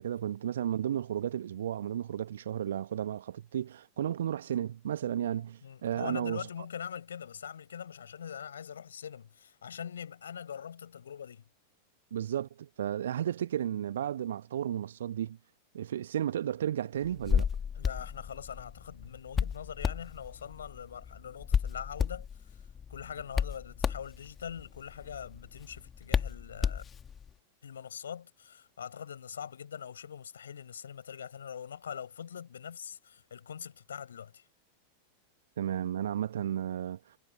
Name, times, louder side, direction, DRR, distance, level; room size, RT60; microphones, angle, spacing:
voice 1, 0.0-6.5 12.1-15.4 15.7-17.5 35.6-37.0, right 10 dB, 60° right, 1.6 m, -33 dB
voice 2, 5.6-11.4 17.8-22.3 22.9-26.9 27.6-34.4, left 8 dB, 65° left, 7.2 m, -43 dB
Hands, 17.0-27.3, left 7 dB, 20° left, 2.4 m, -34 dB
figure-of-eight pair, 90°, 0 cm